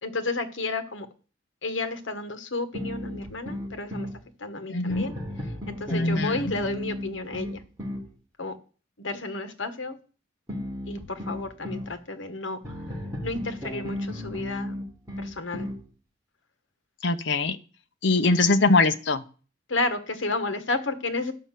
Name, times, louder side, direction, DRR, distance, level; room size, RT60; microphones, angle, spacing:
voice 1, 0.0-1.1 1.6-4.1 4.4-5.1 5.7-7.6 8.4-8.6 9.0-10.0 10.9-12.6 13.2-14.7 15.2-15.7 19.7-21.3, left 3 dB, 85° left, 9 dB, 1.4 m, -31 dB
sound 1, 2.7-4.2 4.9-8.1 10.5-11.9 12.6-15.8, left 1 dB, 15° right, 3.4 m, -34 dB
voice 2, 4.7-5.0 5.9-6.4 17.0-17.6 18.0-19.2, left 3 dB, 65° left, 9 dB, 0.8 m, -22 dB
11.0 x 5.5 x 7.5 m, 0.38 s
head